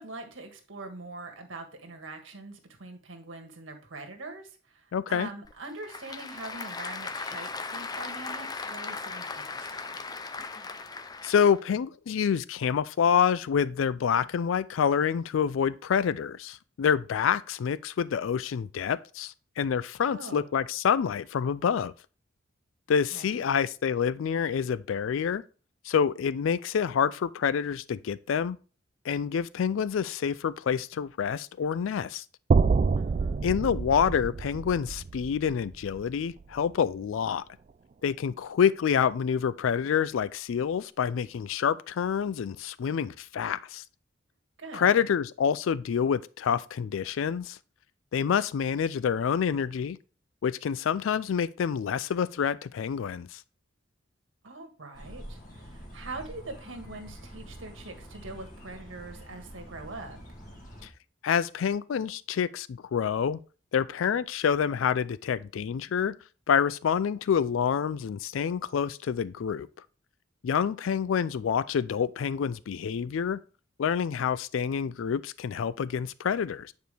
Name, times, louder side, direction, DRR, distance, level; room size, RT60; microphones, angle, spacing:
voice 1, 0.0-10.0 20.0-20.6 23.1-23.4 33.0-33.4 44.6-44.9 54.4-60.2, right 2 dB, 75° right, 1.7 m, -43 dB
voice 2, 4.9-5.3 11.2-21.9 22.9-25.4 25.8-28.6 29.0-32.2 33.4-37.4 38.0-43.8 44.7-47.6 48.1-50.0 50.4-53.4 61.2-63.4 63.7-66.2 66.5-69.7 70.4-73.4 73.8-76.7, left 7 dB, 80° left, 0.4 m, -27 dB
Applause / Crowd, 5.4-11.6, left 4 dB, 20° left, 0.5 m, -38 dB
sound 1, 32.5-36.7, right 4 dB, 35° right, 0.3 m, -27 dB
sound 2, 54.9-60.9, equal, 40° left, 2.3 m, -46 dB
9.2 x 4.6 x 3.4 m
head